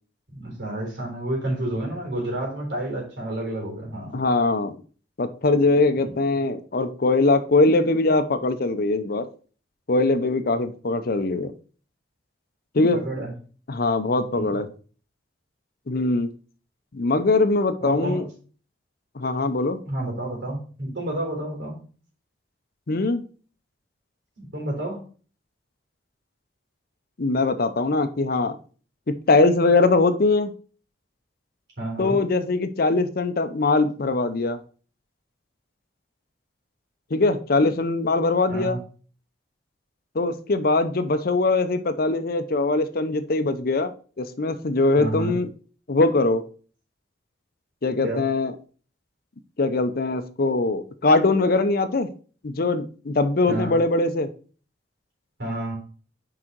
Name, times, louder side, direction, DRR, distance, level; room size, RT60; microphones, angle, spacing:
voice 1, 0.3-4.2 12.9-13.3 14.3-14.6 17.8-18.2 19.9-21.8 24.4-25.0 31.8-32.2 38.5-38.8 45.0-45.4 48.0-48.2 53.5-53.8 55.4-55.8, right 1 dB, 75° right, -1 dB, 3.7 m, -30 dB
voice 2, 4.1-4.8 5.2-9.3 9.9-11.5 12.7-13.0 13.7-14.7 15.9-16.3 16.9-18.3 19.1-19.8 22.9-23.2 27.2-28.6 29.3-30.5 32.0-34.6 37.1-38.8 40.1-45.5 45.9-46.4 47.8-48.5 49.6-52.1 52.4-54.3, left 3 dB, 55° left, 10 dB, 0.7 m, -22 dB
6.3 x 4.9 x 4.5 m, 0.39 s
head